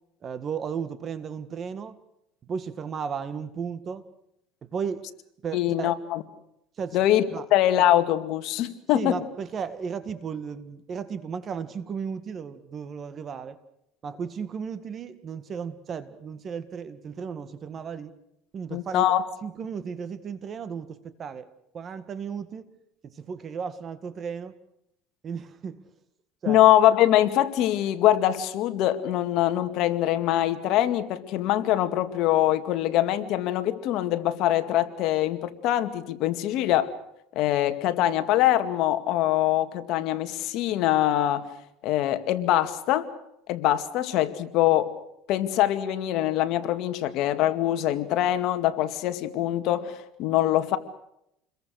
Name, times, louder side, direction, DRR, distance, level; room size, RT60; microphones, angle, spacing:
voice 1, 0.2-2.0 2.5-4.0 4.7-5.1 5.4-5.9 6.8-7.0 7.3-7.4 8.9-13.6 14.0-18.1 18.5-19.1 19.4-21.5 21.7-22.7 23.0-24.5 25.2-25.9 26.4-26.6, right 6 dB, 35° right, 13 dB, 1.8 m, -34 dB
voice 2, 5.5-6.2 6.9-7.2 7.5-9.2 18.7-19.2 26.5-36.9 37.4-41.5 41.8-43.1 43.5-44.9 45.3-50.8, left 13 dB, 60° left, 8 dB, 2.2 m, -23 dB
28.5 x 22.0 x 6.5 m, 0.79 s
cardioid pair, 130°, 0 cm